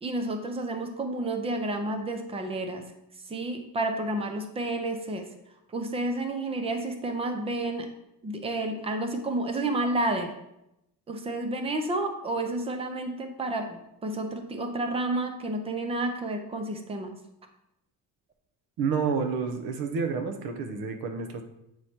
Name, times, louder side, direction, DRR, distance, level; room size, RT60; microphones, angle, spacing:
voice 1, 0.0-2.8 3.3-5.3 5.7-7.9 8.2-10.3 11.1-17.1, right 2 dB, 15° right, 5 dB, 0.5 m, -30 dB
voice 2, 18.8-21.4, right 5 dB, 65° right, 6 dB, 0.9 m, -29 dB
7.9 x 3.2 x 4.3 m, 0.85 s
cardioid pair, 180°, 38 cm